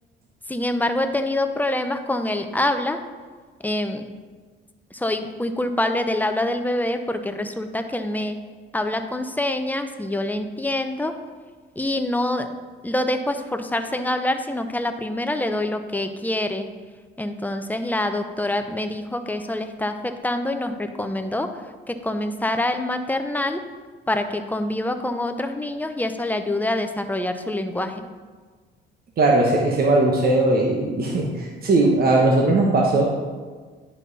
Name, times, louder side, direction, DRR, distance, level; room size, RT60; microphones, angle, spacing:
voice 1, 0.5-3.0 3.6-4.1 4.9-8.4 8.7-11.1 11.8-12.5 12.8-16.7 17.2-23.6 24.1-28.0, left 1 dB, 10° left, 7 dB, 0.7 m, -25 dB
voice 2, 29.2-33.1, right 2 dB, 50° right, -1 dB, 1.3 m, -19 dB
10.5 x 5.6 x 4.1 m, 1.5 s
cardioid pair, 90°, 20 cm